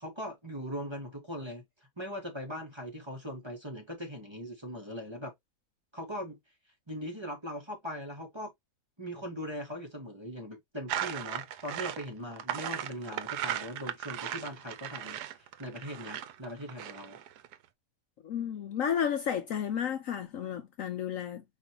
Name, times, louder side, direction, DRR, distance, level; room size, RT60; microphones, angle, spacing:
voice 1, 0.0-1.6 2.0-5.3 5.9-6.4 6.9-8.5 9.0-17.2, equal, 20° right, 1.2 m, -40 dB
sound 1, 10.9-17.5, right 11 dB, 80° right, 1.2 m, -37 dB
voice 2, 18.2-21.4, left 8 dB, 65° left, 0.9 m, -32 dB
4.9 x 3.1 x 2.8 m
omnidirectional pair, 1.7 m